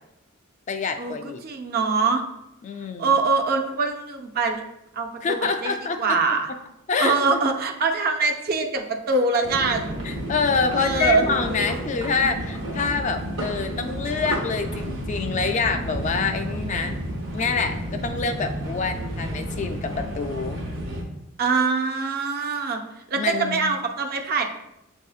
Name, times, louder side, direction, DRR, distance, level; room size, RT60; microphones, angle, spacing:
voice 1, 0.7-1.4 2.6-3.1 5.2-6.2 6.9-7.4 10.0-20.6 23.2-23.7, left 5 dB, 35° left, 6 dB, 0.3 m, -26 dB
voice 2, 1.4-2.2 3.0-4.6 4.9-6.5 7.0-10.0 10.7-11.3 21.4-24.4, right 4 dB, 45° right, 4 dB, 0.5 m, -23 dB
sound 1, 9.4-21.0, right 1 dB, 65° right, 1.0 m, -31 dB
7.6 x 2.7 x 2.4 m, 0.87 s
head